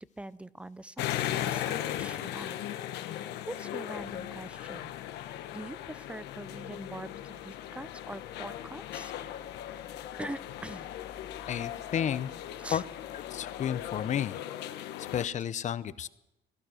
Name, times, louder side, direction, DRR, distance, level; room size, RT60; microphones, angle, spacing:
voice 1, 0.0-2.6 3.0-3.2 3.5-4.9 5.2-9.1 10.2-10.9 12.6-12.9, right 1 dB, 5° right, 18 dB, 0.5 m, -43 dB
sound 1, 1.0-15.3, left 12 dB, 85° left, 1.0 m, -38 dB
sound 2, 4.0-14.0, left 4 dB, 65° left, 3.3 m, -57 dB
voice 2, 11.5-12.3 12.7-12.8 13.3-16.1, left 9 dB, 45° left, 17 dB, 0.7 m, -32 dB
17.5 x 12.5 x 6.3 m, 0.93 s
cardioid pair, 110°, 17 cm